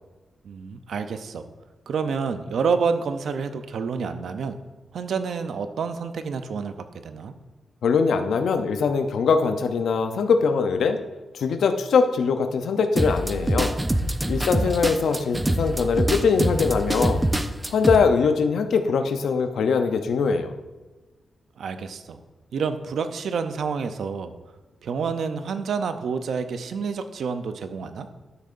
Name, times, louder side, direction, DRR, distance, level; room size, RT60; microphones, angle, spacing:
voice 1, 0.4-1.4 1.9-4.6 4.9-6.8 7.0-7.3 14.4-14.8 21.6-22.2 22.5-24.3 24.8-28.1, right 5 dB, 80° right, 9 dB, 0.6 m, -28 dB
voice 2, 7.8-11.0 11.3-13.8 14.3-17.2 17.7-20.5, left 5 dB, 85° left, 8 dB, 0.6 m, -22 dB
sound 1, 13.0-18.0, right 1 dB, 15° right, 0.5 m, -24 dB
12.0 x 6.6 x 2.6 m, 1.2 s
cardioid pair, 75°, 0 cm